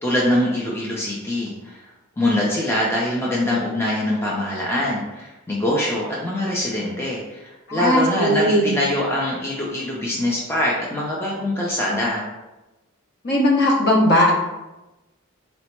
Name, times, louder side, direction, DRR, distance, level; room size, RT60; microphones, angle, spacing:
voice 1, 0.0-1.8 2.2-12.2, left 1 dB, 10° left, -4 dB, 0.4 m, -23 dB
voice 2, 7.7-8.7 13.2-14.3, equal, 50° left, -3 dB, 0.9 m, -18 dB
4.2 x 2.0 x 4.3 m, 1.0 s
head